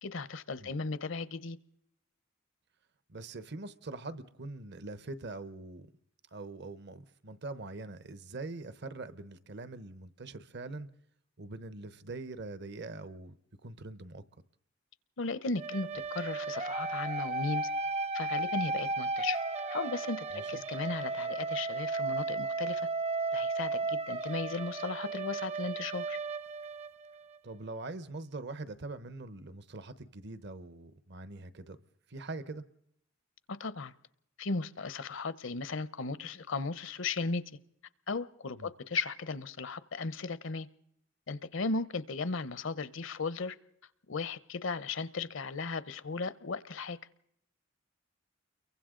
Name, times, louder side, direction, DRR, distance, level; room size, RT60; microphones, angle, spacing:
voice 1, 0.0-1.6 15.2-17.7 18.1-19.4 19.7-22.9 23.3-26.2 33.5-33.9 34.4-37.4 38.1-40.7 41.3-43.6 44.1-47.0, left 3 dB, 70° left, 0.8 m, -36 dB
voice 2, 3.1-5.9 6.3-10.9 11.4-13.3 13.6-14.2 20.3-20.6 27.4-31.8 32.1-32.6 38.6-38.7, right 2 dB, 60° right, 1.0 m, -43 dB
sound 1, 15.6-27.4, right 3 dB, 35° right, 0.7 m, -34 dB
29.5 x 23.5 x 3.8 m
head